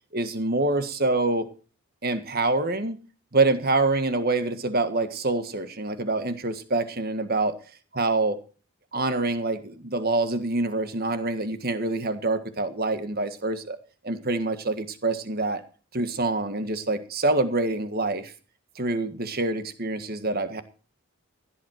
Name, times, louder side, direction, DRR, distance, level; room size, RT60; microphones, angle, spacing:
voice 1, 0.1-1.5 2.0-3.0 3.3-7.5 7.9-8.4 8.9-13.8 14.0-15.6 15.9-18.3 18.7-20.6, right 2 dB, 45° right, 10 dB, 1.6 m, -26 dB
16.5 x 10.5 x 4.5 m, 0.37 s
head